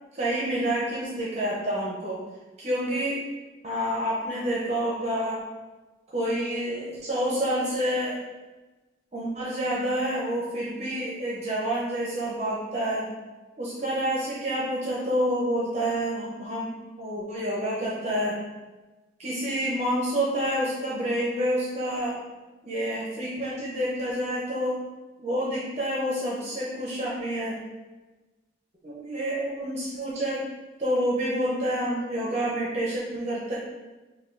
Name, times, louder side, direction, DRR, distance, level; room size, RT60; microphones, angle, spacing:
voice 1, 0.1-2.2 2.6-3.2 3.6-5.4 6.1-8.2 9.1-13.1 13.6-18.4 19.2-22.2 22.6-24.8 25.2-27.6 28.8-30.4 30.8-33.6, equal, 35° right, -6 dB, 0.6 m, -28 dB
5.5 x 2.2 x 2.4 m, 1.2 s
head